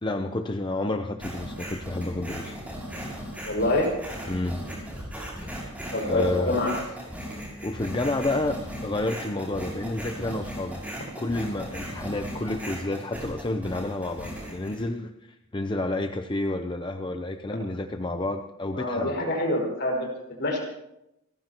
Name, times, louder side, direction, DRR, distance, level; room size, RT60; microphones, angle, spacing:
voice 1, 0.0-2.6 4.3-4.6 5.7-5.8 6.0-6.6 7.6-8.6 8.8-10.8 11.2-19.2, left 2 dB, 25° left, 6 dB, 0.7 m, -30 dB
sound 1, 1.2-14.8, equal, 5° right, 6.0 m, -37 dB
voice 2, 3.5-3.9 5.9-6.8 18.7-20.1 20.4-20.6, left 1 dB, 55° left, -1 dB, 6.0 m, -26 dB
29.5 x 15.0 x 3.0 m, 0.86 s
head